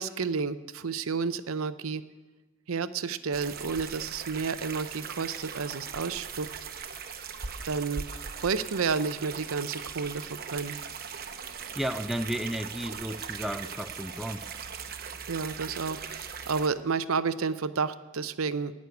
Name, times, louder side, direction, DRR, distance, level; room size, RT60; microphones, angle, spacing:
voice 1, 0.0-2.0 2.7-6.5 7.6-8.0 8.4-10.8 15.3-18.7, right 5 dB, 85° right, 13 dB, 0.6 m, -31 dB
sound 1, 3.3-16.7, right 6 dB, 45° right, 0.9 m, -39 dB
voice 2, 11.8-14.5, equal, ahead, 7 dB, 0.3 m, -33 dB
16.0 x 6.4 x 9.5 m, 1.2 s
head